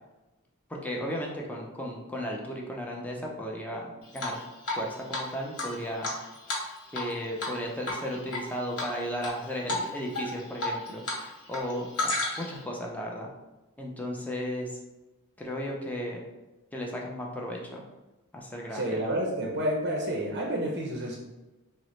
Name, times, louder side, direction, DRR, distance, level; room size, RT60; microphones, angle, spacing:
voice 1, 0.7-3.8 4.1-4.4 4.8-6.1 6.9-13.3 13.8-14.8 15.4-16.2 16.7-17.8 18.3-19.0, equal, 5° left, -1 dB, 0.4 m, -35 dB
Drip, 4.2-4.8 5.1-5.2 5.6-7.1 7.4-7.6 7.8-8.4 8.8-9.3 9.7-9.8 10.1-11.2 11.5-12.6, left 2 dB, 70° left, 0.9 m, -31 dB
voice 2, 18.7-21.2, right 1 dB, 50° right, -1 dB, 0.5 m, -29 dB
3.8 x 2.0 x 3.0 m, 1.1 s
head